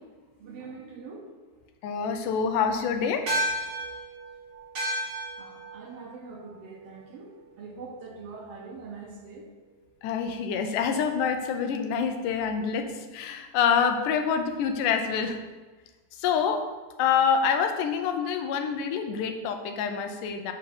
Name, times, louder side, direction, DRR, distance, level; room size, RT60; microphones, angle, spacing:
voice 1, 0.4-1.3 1.6-1.7 5.4-9.5, right 4 dB, 65° right, 1 dB, 1.6 m, -43 dB
voice 2, 1.8-3.2 10.0-15.4 16.2-16.6 17.0-20.5, left 6 dB, 85° left, 6 dB, 2.3 m, -26 dB
sound 1, 3.3-7.9, equal, 45° right, 1.5 m, -34 dB
5.8 x 5.8 x 6.0 m, 1.3 s
omnidirectional pair, 3.6 m